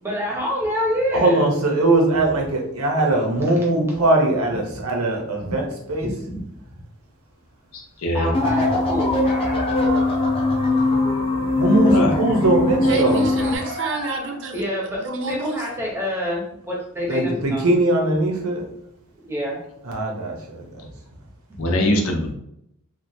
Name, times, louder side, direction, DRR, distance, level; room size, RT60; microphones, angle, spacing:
voice 1, 0.0-1.5 3.5-3.6 4.5-4.8 5.4-5.6 6.0-6.4 8.1-9.2 14.5-17.7 19.2-19.6 21.5-21.6, equal, 10° right, -4 dB, 0.7 m, -27 dB
voice 2, 1.1-6.1 11.5-13.2 17.1-18.7 19.9-20.9, right 2 dB, 85° right, 1 dB, 0.8 m, -20 dB
voice 3, 7.7-8.3 11.8-12.2 12.8-13.0 21.6-22.3, left 1 dB, 85° left, 2 dB, 0.6 m, -23 dB
sound 1, 8.3-13.6, left 2 dB, 25° left, 0.4 m, -21 dB
sound 2, 9.2-10.6 13.4-14.5, equal, 40° left, 0.8 m, -33 dB
voice 4, 12.9-14.6 15.0-15.6, right 3 dB, 55° right, 3 dB, 0.5 m, -28 dB
3.1 x 2.3 x 2.7 m, 0.76 s
head